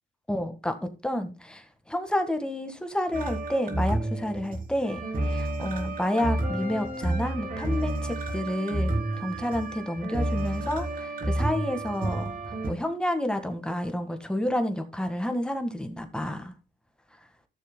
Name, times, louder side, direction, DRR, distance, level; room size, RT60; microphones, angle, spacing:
voice 1, 0.3-5.0 5.3-16.5, left 1 dB, 5° left, 1.6 m, -30 dB
sound 1, 3.1-12.7, right 1 dB, 45° right, 3.4 m, -30 dB
15.0 x 6.8 x 2.2 m
cardioid pair, 90°, 20 cm